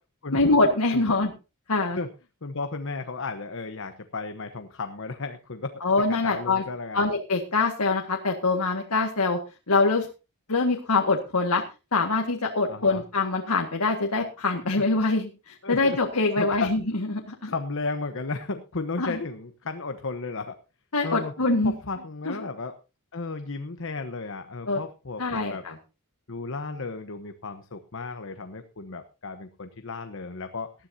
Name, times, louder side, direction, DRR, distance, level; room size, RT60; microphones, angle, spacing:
voice 1, 0.3-1.3 1.7-2.0 5.8-6.6 6.9-9.4 9.7-10.1 10.5-11.6 11.9-16.8 17.3-17.5 19.0-19.2 20.9-21.7 22.3-22.4 24.7-24.8 25.2-25.8, left 3 dB, 85° left, 2 dB, 1.9 m, -24 dB
voice 2, 2.4-5.8 6.1-7.1 12.7-13.0 15.6-16.0 16.4-16.7 17.5-20.6 21.0-21.3 21.6-22.7 23.1-25.6 26.3-30.7, left 3 dB, 60° left, 8 dB, 1.1 m, -34 dB
19.0 x 13.0 x 2.8 m, 0.31 s
head